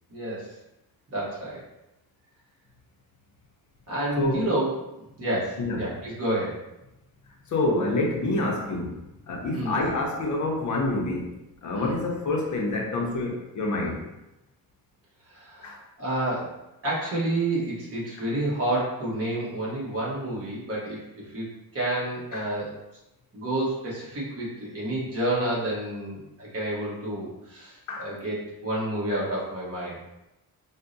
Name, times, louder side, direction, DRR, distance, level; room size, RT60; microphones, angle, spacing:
voice 1, 0.1-0.5 1.1-1.6 3.9-4.7 5.0-6.6 9.5-9.8 11.7-12.0 15.3-16.5 16.8-21.0 21.3-21.5 21.7-22.7 23.3-30.0, right 1 dB, 40° right, -6 dB, 1.0 m, -29 dB
voice 2, 4.2-4.5 5.6-5.8 7.5-9.0 9.3-11.3 11.6-14.0 15.6-15.8 22.3-22.5 27.9-28.1 29.1-29.2, left 2 dB, 50° left, -1 dB, 0.6 m, -27 dB
4.5 x 2.1 x 2.5 m, 0.93 s
wide cardioid pair, 170°, 38 cm